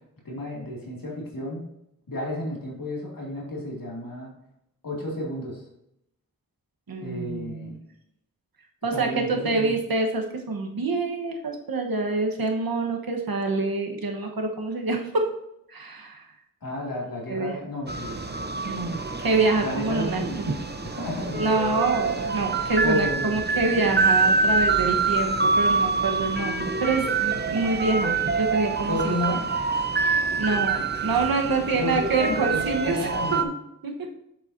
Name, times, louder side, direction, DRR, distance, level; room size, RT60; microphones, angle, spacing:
voice 1, 0.2-1.6 2.1-4.3 4.8-5.6 7.0-7.8 8.9-9.7 16.6-18.5 19.6-20.4 21.0-21.5 22.8-23.4 28.8-29.4 31.7-33.5, left 1 dB, 70° left, -3 dB, 2.5 m, -32 dB
voice 2, 6.9-7.8 8.8-15.3 15.7-16.3 17.3-17.6 18.6-20.2 21.4-29.4 30.4-33.1 33.8-34.0, right 3 dB, 85° right, 2 dB, 1.2 m, -26 dB
sound 1, 17.9-33.4, right 4 dB, 30° right, 0.8 m, -26 dB
7.7 x 7.2 x 2.7 m, 0.80 s
wide cardioid pair, 75°, 35 cm